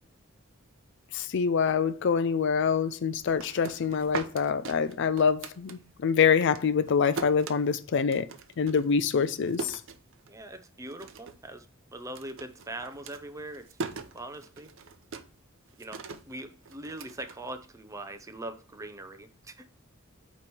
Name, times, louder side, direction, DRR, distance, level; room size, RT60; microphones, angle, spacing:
voice 1, 1.1-8.3 8.6-9.8, left 6 dB, 60° left, 0.4 m, -25 dB
sound 1, 3.2-6.1 6.4-10.6 10.9-11.5 11.7-18.0, right 4 dB, 65° right, 0.7 m, -41 dB
voice 2, 10.3-11.7 11.9-13.7 14.1-14.7 15.8-19.7, right 1 dB, 15° right, 0.6 m, -41 dB
8.6 x 3.1 x 4.2 m
head